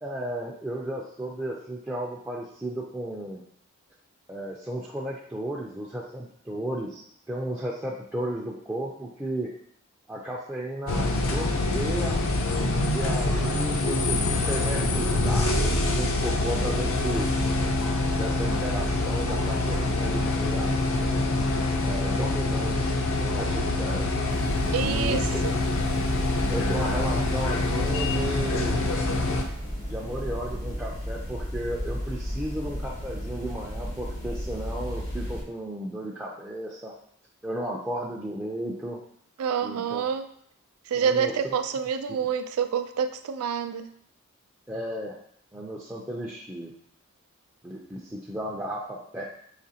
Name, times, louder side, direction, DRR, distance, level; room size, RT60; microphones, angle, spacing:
voice 1, 0.0-3.4 4.3-9.5 10.1-12.3 12.8-17.3 18.1-20.8 21.8-24.2 24.8-25.6 26.5-28.9 29.9-36.9 37.4-39.0 39.6-40.0 41.0-41.5 44.7-45.2 45.5-46.7 47.6-49.2, right 1 dB, 10° right, -5 dB, 0.4 m, -34 dB
sound 1, 10.9-29.4, left 2 dB, 65° left, 0.6 m, -25 dB
sound 2, 24.3-35.4, equal, 85° left, 1.7 m, -34 dB
voice 2, 24.7-25.5 39.4-40.2 40.9-43.9, right 7 dB, 85° right, 9 dB, 0.4 m, -27 dB
5.0 x 3.0 x 2.8 m, 0.67 s
head